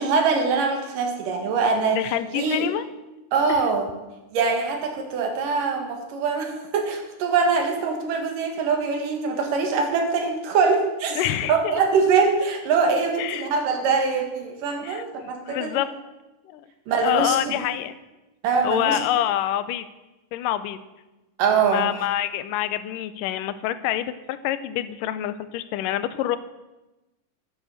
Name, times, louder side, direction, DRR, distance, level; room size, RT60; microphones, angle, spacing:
voice 1, 0.0-2.0 2.3-2.7 3.3-3.9 4.3-15.8 16.9-17.6 18.4-19.0 21.4-21.9, right 5 dB, 80° right, 3 dB, 3.3 m, -23 dB
voice 2, 1.9-2.8 3.5-3.6 11.2-11.7 13.2-13.5 14.8-15.9 16.5-16.7 17.0-18.0 18.6-19.9 20.3-20.8 21.7-26.4, left 12 dB, 90° left, 13 dB, 2.2 m, -26 dB
11.5 x 9.9 x 6.6 m, 1.1 s
omnidirectional pair, 3.8 m